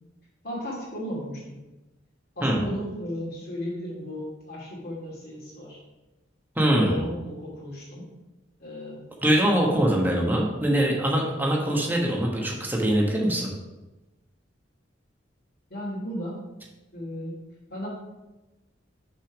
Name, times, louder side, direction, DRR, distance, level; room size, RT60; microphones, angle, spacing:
voice 1, 0.4-1.6 2.4-5.8 6.7-8.0 8.6-9.0 15.7-16.4 16.9-17.4 17.7-17.9, equal, 50° left, -4 dB, 2.5 m, -35 dB
voice 2, 6.5-7.0 9.2-13.5, right 1 dB, 10° right, -1 dB, 1.3 m, -23 dB
6.0 x 5.5 x 5.1 m, 1.1 s
head